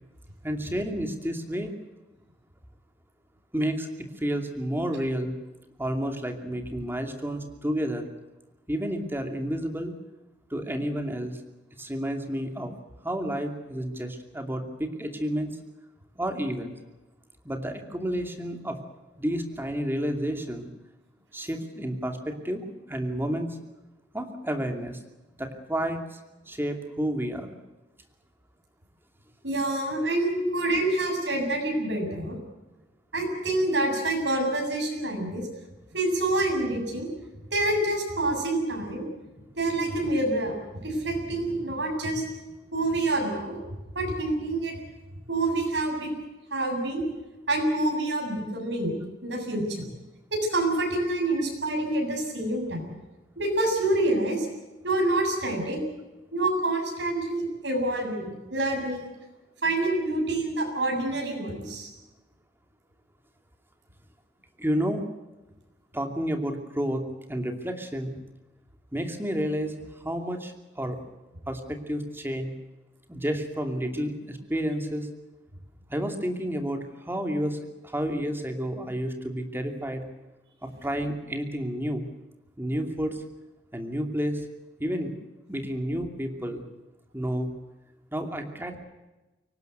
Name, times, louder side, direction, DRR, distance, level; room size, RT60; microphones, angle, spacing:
voice 1, 0.4-1.7 3.5-5.3 5.8-8.1 8.7-9.9 10.5-11.4 11.8-12.7 13.0-15.6 16.2-16.7 17.4-18.8 19.2-20.7 21.3-23.6 24.1-25.0 25.4-26.2 26.5-27.5 64.6-65.0 65.9-68.1 68.9-71.0 71.5-72.5 73.1-75.1 75.9-77.6 77.8-80.0 80.6-82.1 82.6-83.2 83.7-84.4 84.8-85.1 85.5-86.6 87.1-87.5 88.1-88.8, equal, 15° right, 5 dB, 2.7 m, -30 dB
voice 2, 29.4-32.4 33.1-35.5 35.9-37.1 37.5-39.0 39.6-42.2 42.7-43.6 43.9-44.7 45.3-46.1 46.5-47.0 47.5-48.9 49.2-49.9 50.3-52.9 53.4-54.5 54.8-55.8 56.3-59.1 59.6-61.9, right 2 dB, 85° right, 2 dB, 7.6 m, -27 dB
24.0 x 18.5 x 8.0 m, 1.1 s
head